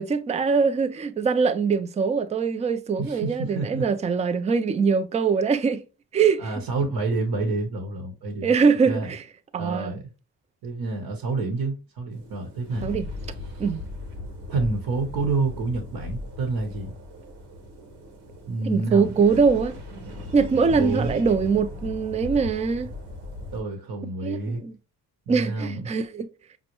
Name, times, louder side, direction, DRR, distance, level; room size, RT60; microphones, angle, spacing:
voice 1, 0.0-5.8 6.1-6.5 8.4-9.2 9.5-10.0 12.8-13.0 13.6-13.8 18.7-19.8 20.3-22.9 24.2-24.7 25.3-26.3, right 5 dB, 20° right, 0.3 m, -22 dB
voice 2, 3.0-3.8 6.4-8.5 8.8-9.1 9.6-10.1 10.6-12.9 13.5-13.6 14.5-16.9 18.5-19.1 20.7-21.2 23.5-24.6 25.3-25.9, right 3 dB, 65° right, 1.0 m, -28 dB
sound 1, 12.1-23.6, left 2 dB, 90° right, 1.1 m, -38 dB
5.2 x 2.0 x 2.9 m
cardioid pair, 75°, 40 cm